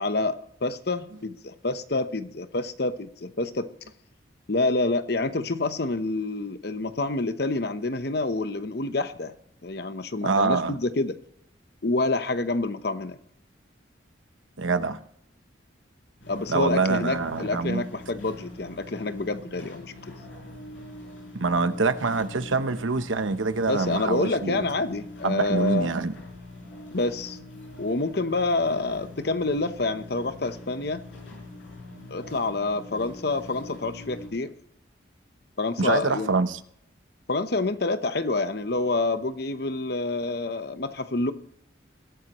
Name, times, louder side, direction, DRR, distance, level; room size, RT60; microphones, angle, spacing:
voice 1, 0.0-3.7 4.5-9.3 9.6-11.2 11.8-13.2 16.3-19.9 23.7-25.9 26.9-27.4 27.8-31.0 32.1-34.5 35.6-36.3 37.3-41.3, left 2 dB, 55° left, 0.9 m, -27 dB
voice 2, 10.2-10.7 14.6-15.0 16.5-17.9 21.3-24.7 25.2-26.2 35.8-36.6, right 4 dB, 85° right, 0.9 m, -25 dB
sound 1, 16.2-34.3, left 2 dB, 75° left, 7.1 m, -44 dB
21.5 x 12.5 x 3.1 m
head